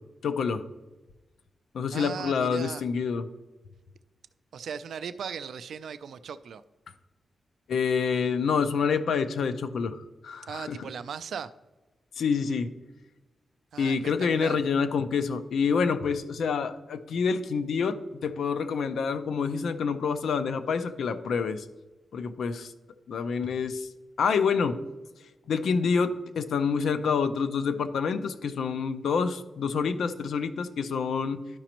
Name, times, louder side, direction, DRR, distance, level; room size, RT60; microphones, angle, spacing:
voice 1, 0.2-0.6 1.7-3.3 7.7-10.8 12.2-12.7 13.8-21.6 22.1-22.7 23.1-23.9 24.2-24.8 25.5-31.4, left 5 dB, 80° left, 10 dB, 0.5 m, -27 dB
voice 2, 1.9-2.8 4.5-6.6 10.5-11.5 13.7-14.6, right 7 dB, 75° right, 12 dB, 0.3 m, -38 dB
12.0 x 5.0 x 2.9 m, 1.2 s
wide cardioid pair, 155°, 0 cm